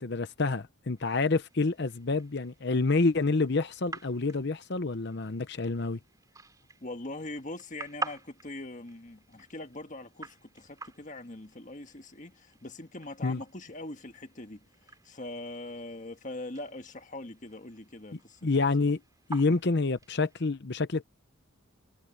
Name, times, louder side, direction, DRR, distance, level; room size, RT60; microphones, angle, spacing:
voice 1, 0.0-6.0 13.2-13.4 18.4-19.0 19.3-21.0, left 3 dB, 55° left, 0.8 m, -28 dB
sound 1, 1.0-20.5, right 3 dB, 15° right, 3.9 m, -48 dB
voice 2, 6.8-18.4, left 2 dB, 40° left, 1.6 m, -42 dB
head